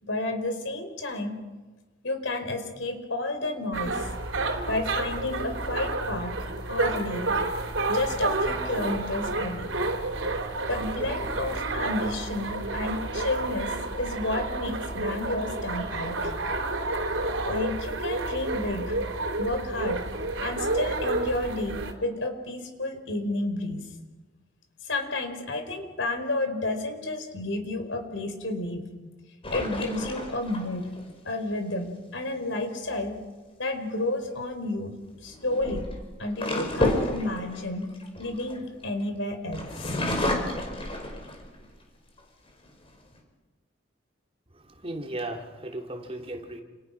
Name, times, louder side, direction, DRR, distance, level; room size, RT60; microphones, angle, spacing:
voice 1, 0.0-1.4 2.0-4.1 4.7-6.3 6.7-7.2 7.9-9.7 10.7-16.2 17.4-18.9 19.4-20.0 20.4-23.9 24.8-28.8 29.5-30.9 31.2-33.2 33.6-34.9 35.2-35.8 36.2-37.9 38.2-40.0, left 2 dB, 70° left, 6 dB, 4.9 m, -31 dB
sound 1, 3.7-21.9, right 2 dB, 85° right, 3.7 m, -30 dB
sound 2, 29.4-31.0 34.0-34.3 35.3-39.0 39.5-41.7 42.2-42.3 42.6-43.2, left 1 dB, 30° left, 5.3 m, -30 dB
voice 2, 44.6-46.6, right 1 dB, 30° right, 2 dB, 3.0 m, -36 dB
29.5 x 28.5 x 6.0 m, 1.2 s
head